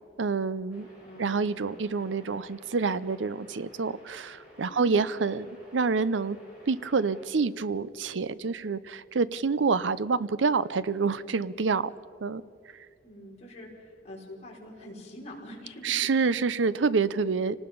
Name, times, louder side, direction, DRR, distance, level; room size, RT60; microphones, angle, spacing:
voice 1, 0.2-0.9 1.2-5.5 5.7-6.4 6.7-11.9 12.2-12.4 15.8-17.6, right 4 dB, 80° right, 17 dB, 0.6 m, -27 dB
sound 1, 0.7-7.3, equal, 5° right, 7.1 m, -54 dB
voice 2, 1.0-2.0 4.7-4.9 13.0-16.0, left 1 dB, 35° left, -3 dB, 4.9 m, -46 dB
29.0 x 19.0 x 5.5 m, 2.5 s
head